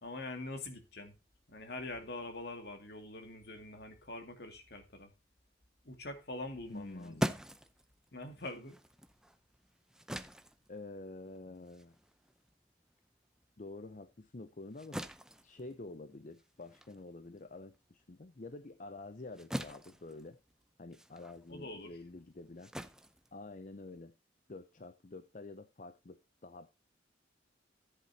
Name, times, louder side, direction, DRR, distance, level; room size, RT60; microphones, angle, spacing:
voice 1, 0.0-1.1 1.5-5.1 5.8-7.3 8.1-8.8 21.5-22.0, left 2 dB, 55° left, 2.1 m, -44 dB
voice 2, 6.7-7.3 10.7-12.0 13.6-15.0 15.4-20.4 20.8-22.7 23.3-24.1 24.5-26.7, left 2 dB, 40° left, 0.7 m, -48 dB
sound 1, 6.7-13.5 13.8-24.0, equal, 5° right, 0.6 m, -44 dB
14.0 x 8.1 x 2.8 m
head